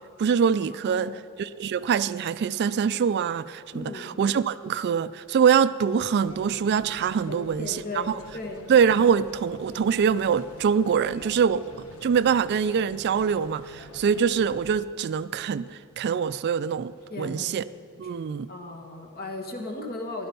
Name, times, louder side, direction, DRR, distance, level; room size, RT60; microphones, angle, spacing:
voice 1, 0.2-8.2 8.7-11.6 12.0-17.6 18.0-18.5, right 7 dB, 50° right, 0.3 m, -24 dB
voice 2, 0.8-1.2 3.7-4.2 7.3-8.6 17.1-17.6 18.0-18.1 18.5-20.3, left 2 dB, 45° left, 1.7 m, -36 dB
sound 1, 6.2-14.9, left 1 dB, 80° left, 1.3 m, -47 dB
15.5 x 11.5 x 5.4 m
head